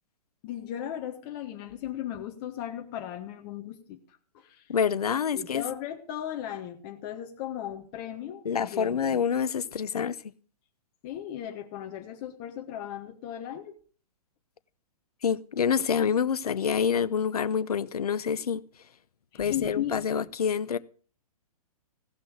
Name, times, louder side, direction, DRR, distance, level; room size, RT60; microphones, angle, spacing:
voice 1, 0.4-4.0 4.3-4.7 5.3-9.2 11.0-13.8 19.3-20.0, left 11 dB, 35° left, 1.4 m, -36 dB
voice 2, 4.7-5.6 8.4-10.2 15.2-18.6 19.4-20.8, left 7 dB, 75° left, 0.8 m, -27 dB
16.5 x 6.1 x 6.4 m
figure-of-eight pair, 120°, 20 cm